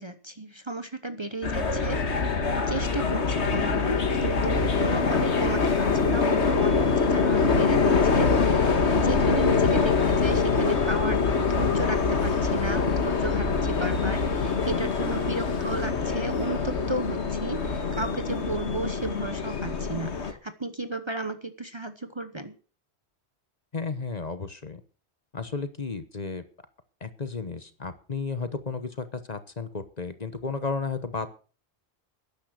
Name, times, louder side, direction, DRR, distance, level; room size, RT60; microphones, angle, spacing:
voice 1, 0.0-2.4 2.7-22.5, right 2 dB, 25° right, 10 dB, 1.0 m, -34 dB
sound 1, 1.4-20.3, left 4 dB, 90° left, 1.8 m, -24 dB
voice 2, 1.6-2.0 10.0-10.1 15.4-16.0 23.7-24.8 25.3-26.4 27.0-31.3, left 4 dB, 40° left, 11 dB, 1.1 m, -34 dB
12.5 x 10.5 x 6.5 m, 0.39 s
omnidirectional pair, 1.1 m